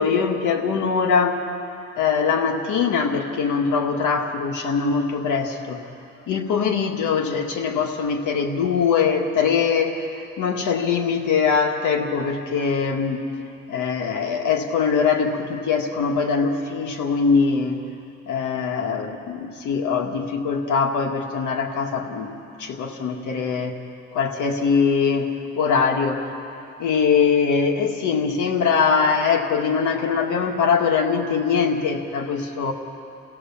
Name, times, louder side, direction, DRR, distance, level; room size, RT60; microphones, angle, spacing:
voice 1, 0.0-1.4 2.0-5.8 6.3-13.2 13.7-17.8 18.3-22.3 22.6-23.8 24.1-26.3 26.8-32.7, left 5 dB, 80° left, 3 dB, 2.1 m, -22 dB
29.5 x 16.0 x 7.3 m, 2.9 s
cardioid pair, 90°, 30 cm